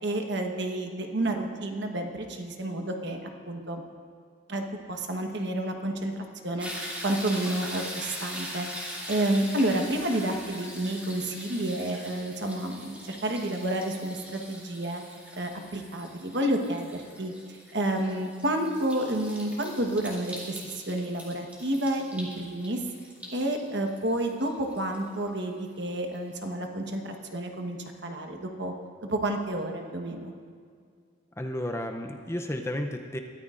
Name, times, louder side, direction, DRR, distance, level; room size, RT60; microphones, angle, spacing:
voice 1, 0.0-3.8 4.5-4.6 4.9-15.0 15.4-22.8 23.3-28.7 29.0-30.3, right 1 dB, 55° right, 4 dB, 1.2 m, -30 dB
sound 1, 6.6-25.7 26.1-26.2, equal, 5° right, 2.6 m, -42 dB
voice 2, 31.4-33.2, left 1 dB, 15° left, 4 dB, 0.6 m, -32 dB
22.0 x 13.5 x 2.5 m, 2.1 s
head